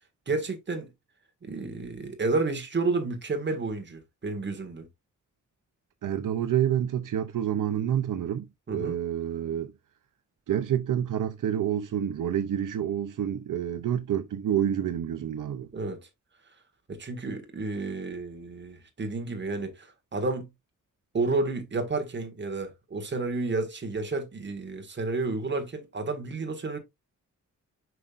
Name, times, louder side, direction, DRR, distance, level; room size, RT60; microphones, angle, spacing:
voice 1, 0.3-0.9 1.5-4.9 8.7-9.0 15.7-16.0 16.9-20.5 21.1-26.8, right 3 dB, 35° right, 1.7 m, -31 dB
voice 2, 6.0-9.7 10.5-15.7, right 10 dB, 75° right, 0.7 m, -28 dB
7.7 x 5.5 x 2.5 m
wide cardioid pair, 155°, 32 cm